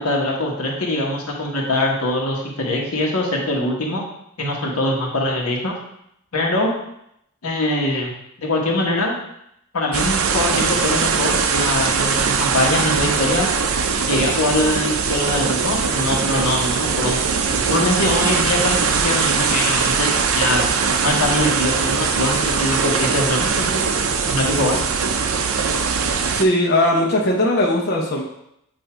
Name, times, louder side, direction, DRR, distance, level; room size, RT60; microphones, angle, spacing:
voice 1, 0.0-4.0 4.4-5.7 6.3-6.7 7.4-8.1 8.4-9.2 9.7-13.5 14.1-17.2 17.6-20.7 21.0-23.8 24.3-24.8, left 1 dB, 90° left, -1 dB, 1.3 m, -22 dB
sound 1, 9.9-26.4, right 5 dB, 70° right, 0.5 m, -21 dB
voice 2, 26.3-28.2, left 1 dB, 50° left, -2 dB, 0.8 m, -18 dB
7.9 x 2.7 x 4.4 m, 0.78 s
head